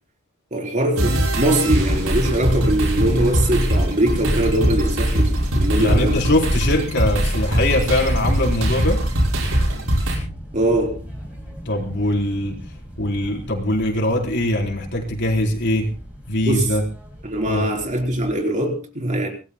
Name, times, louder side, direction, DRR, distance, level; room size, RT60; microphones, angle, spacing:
voice 1, 0.5-6.2 10.5-11.0 16.5-16.7 17.2-19.3, right 1 dB, 40° right, 2 dB, 4.0 m, -22 dB
sound 1, 1.0-10.2, right 1 dB, 85° right, 5.8 m, -21 dB
sound 2, 1.6-18.3, equal, 5° right, 6.7 m, -35 dB
voice 2, 5.7-9.0 11.7-12.6 13.0-15.9 16.3-16.8 17.5-17.7, left 1 dB, 60° left, 1 dB, 4.1 m, -22 dB
25.0 x 19.5 x 2.2 m, 0.32 s
head